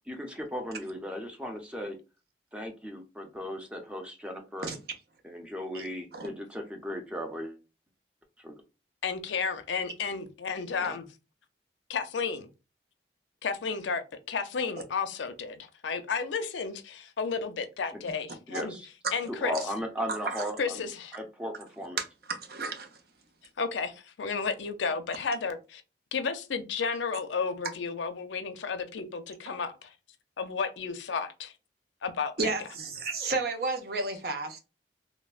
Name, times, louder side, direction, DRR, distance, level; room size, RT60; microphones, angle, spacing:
voice 1, 0.1-2.0 2.5-4.7 5.2-7.6 8.4-8.6 10.8-11.0 18.5-18.9 19.3-20.8 21.1-22.0, equal, 5° right, 0.5 m, -36 dB
voice 2, 9.0-11.0 11.9-12.5 13.4-18.7 19.1-19.5 20.6-21.1 23.6-25.8 26.1-29.9 30.4-31.5 32.0-32.7, left 5 dB, 85° left, 0.5 m, -32 dB
voice 3, 20.1-20.5 22.0-22.9 32.4-34.6, right 3 dB, 55° right, 0.6 m, -32 dB
3.1 x 2.1 x 2.3 m
head